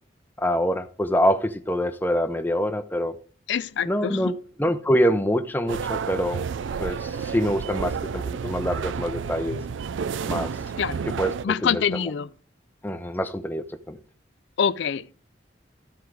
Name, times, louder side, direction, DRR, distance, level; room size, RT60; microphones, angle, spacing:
voice 1, 0.4-3.1 3.9-6.5 6.8-9.6 10.3-10.5 11.2-12.0 12.8-14.0, equal, 10° left, 0.6 m, -25 dB
voice 2, 3.5-4.3 10.8-11.0 11.4-12.3 14.6-15.1, left 7 dB, 75° left, 0.4 m, -25 dB
sound 1, 5.7-11.4, right 6 dB, 90° right, 0.4 m, -30 dB
13.5 x 4.7 x 4.7 m
head